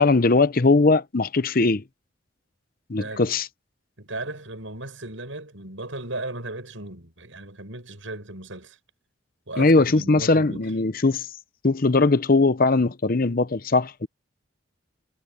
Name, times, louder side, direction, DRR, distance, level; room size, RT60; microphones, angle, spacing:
voice 1, 0.0-1.8 2.9-3.5 9.6-11.3 11.6-14.1, left 3 dB, 45° left, 0.8 m, -20 dB
voice 2, 4.0-8.8 9.5-10.6, right 2 dB, 75° right, 7.7 m, -36 dB
head